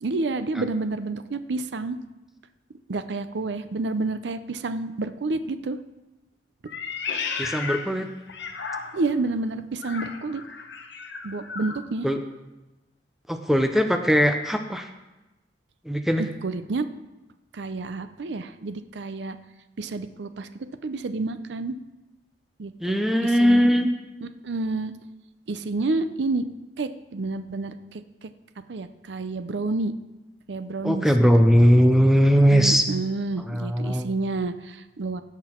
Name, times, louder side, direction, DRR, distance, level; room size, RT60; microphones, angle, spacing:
voice 1, 0.0-2.0 2.9-5.8 8.9-10.4 11.2-12.1 16.2-16.9 17.5-19.4 19.8-21.8 22.6-23.7 24.2-24.9 25.5-26.5 26.8-28.3 28.7-29.9 30.5-31.1 32.5-35.2, right 3 dB, 75° right, 11 dB, 0.6 m, -29 dB
Meow, 6.7-9.2 9.8-11.8, left 5 dB, 80° left, 0.9 m, -34 dB
voice 2, 7.4-8.1 12.0-12.2 13.3-14.9 15.9-16.2 22.8-23.9 30.8-32.8 33.5-34.1, equal, ahead, 6 dB, 0.5 m, -19 dB
16.0 x 6.0 x 4.4 m, 1.0 s
head